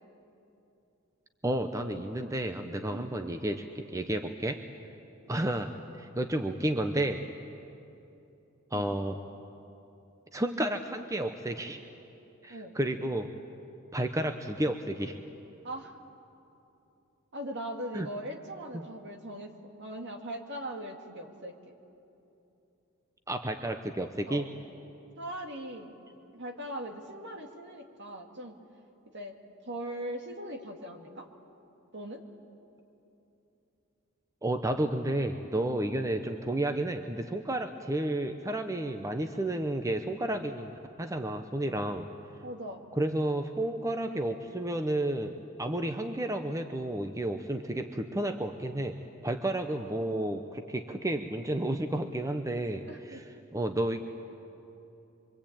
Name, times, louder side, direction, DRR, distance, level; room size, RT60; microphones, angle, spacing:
voice 1, 1.4-4.6 5.3-7.3 8.7-9.2 10.3-11.8 12.4-13.3 13.9-15.2 17.9-18.1 18.7-18.9 23.3-24.5 34.4-42.1 43.0-53.2 53.5-54.0, right 1 dB, 15° right, 7 dB, 0.8 m, -31 dB
voice 2, 15.6-16.0 17.3-21.7 24.3-24.5 25.2-25.9 26.3-28.6 29.1-29.4 29.6-31.3 31.9-32.2 42.4-42.8 52.8-53.2, right 1 dB, 55° right, 3 dB, 2.2 m, -40 dB
25.0 x 24.0 x 8.8 m, 2.8 s
head